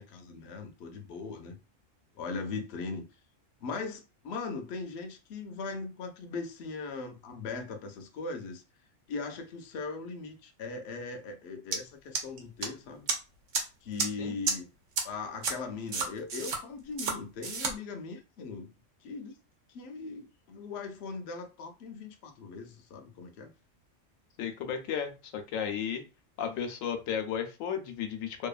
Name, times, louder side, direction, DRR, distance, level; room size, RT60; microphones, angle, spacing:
voice 1, 0.0-1.6 2.2-3.1 3.6-8.6 9.1-13.1 13.8-14.7 15.0-18.7 19.0-19.3 19.7-23.5, left 4 dB, 65° left, 0.8 m, -39 dB
sound 1, 11.7-11.8 12.1-12.7 13.1-13.2 13.5-13.6 14.0-14.1 14.5-14.6 15.0-15.1 15.4-15.5 15.9-16.6 17.0-17.1 17.4-17.7, right 5 dB, 75° right, 1.0 m, -29 dB
voice 2, 24.4-26.0 26.4-28.5, left 8 dB, 90° left, 1.0 m, -34 dB
2.7 x 2.3 x 2.3 m
omnidirectional pair, 1.3 m